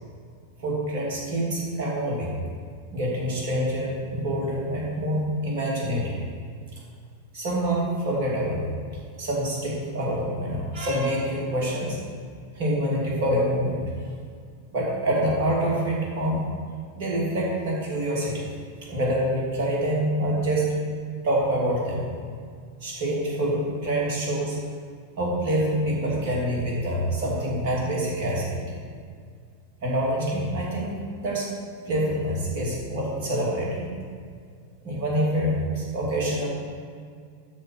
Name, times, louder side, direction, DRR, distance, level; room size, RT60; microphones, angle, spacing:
voice 1, 0.6-2.3 2.9-6.2 7.3-8.6 9.2-12.0 12.5-13.8 14.7-16.4 17.0-18.4 18.8-20.7 21.2-22.1 22.8-24.6 25.2-28.7 29.8-31.5 31.9-33.9 34.8-36.5, right 1 dB, 50° right, -4 dB, 2.7 m, -26 dB
12.0 x 4.4 x 6.2 m, 2.1 s
figure-of-eight pair, 90°, 0 cm